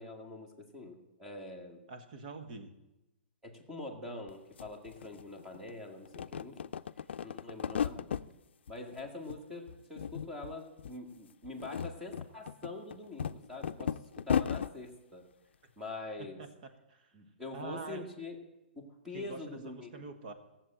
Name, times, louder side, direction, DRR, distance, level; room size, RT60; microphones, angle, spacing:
voice 1, 0.0-1.8 3.4-6.6 7.2-8.1 8.7-15.3 15.8-16.4 17.1-18.4 18.7-19.9, left 2 dB, 5° right, 2 dB, 1.8 m, -44 dB
voice 2, 1.9-2.8 16.2-16.5 16.9-17.1 17.5-18.1 19.1-20.3, right 4 dB, 50° right, 7 dB, 1.7 m, -45 dB
sound 1, 4.3-4.4 4.6-5.7 6.0-8.3 8.7-9.4 9.7-10.5 10.8-10.9 11.4-14.7, left 8 dB, 75° left, 0.5 m, -35 dB
15.5 x 7.4 x 8.8 m, 0.96 s
hypercardioid pair, 160°, 6 cm